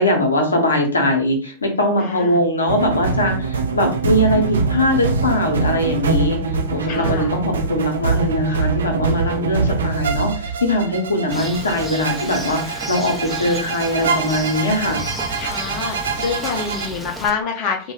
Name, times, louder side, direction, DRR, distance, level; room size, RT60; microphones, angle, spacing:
voice 1, 0.0-6.4 6.7-15.0, left 1 dB, 75° left, 2 dB, 0.8 m, -21 dB
voice 2, 2.0-2.4 6.9-7.3 15.4-17.9, left 5 dB, 40° left, 1 dB, 0.6 m, -26 dB
sound 1, 2.7-16.9, right 4 dB, 65° right, 0.4 m, -24 dB
Bird, 11.3-17.3, equal, 5° right, 0.5 m, -32 dB
3.0 x 2.2 x 3.4 m, 0.38 s
figure-of-eight pair, 90°, 0 cm